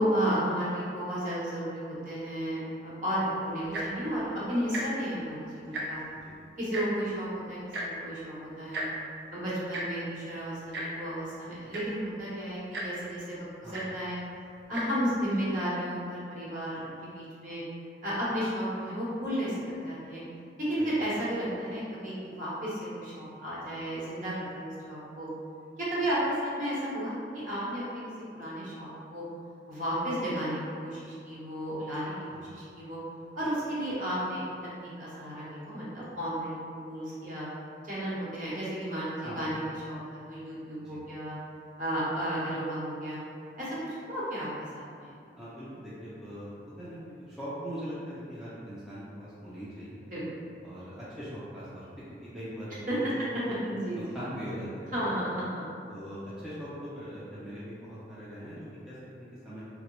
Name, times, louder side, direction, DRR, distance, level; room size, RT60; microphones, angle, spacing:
voice 1, 0.0-6.0 6.6-8.8 9.3-14.2 14.7-17.6 18.0-20.2 20.6-25.3 25.8-28.0 28.3-29.2 29.7-32.1 32.5-33.0 33.4-34.4 34.8-37.5 37.8-41.4 41.8-43.2 43.6-44.5 44.7-45.1 50.1-50.2 52.9-53.0 53.6-54.0 54.9-55.6, equal, 45° right, -8 dB, 0.9 m, -33 dB
Tick-tock, 3.6-4.0 4.7-4.8 5.2-5.3 5.6-6.1 6.7-6.8 7.7-7.9 8.7-8.9 9.7-9.8 10.7-10.9 11.4-11.5 11.7-12.0 12.7-12.9 13.7-13.8 14.6-14.8 15.5-15.6, right 1 dB, 75° right, 0.6 m, -35 dB
voice 2, 45.4-46.5 46.8-50.0 50.6-53.5 53.9-55.2 55.9-59.6, equal, 5° right, -11 dB, 0.4 m, -41 dB
3.5 x 2.0 x 2.9 m, 2.4 s
head